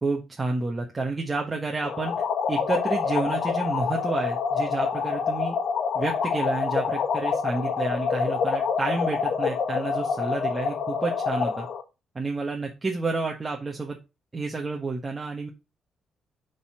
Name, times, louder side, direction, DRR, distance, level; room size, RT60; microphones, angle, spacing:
voice 1, 0.0-2.1 2.5-5.6 5.9-11.7 12.1-14.0 14.3-15.5, right 3 dB, 25° right, 0 dB, 1.3 m, -30 dB
sound 1, 1.8-11.8, left 6 dB, 65° left, 1.4 m, -27 dB
7.3 x 4.1 x 4.9 m, 0.27 s
cardioid pair, 90°, 0 cm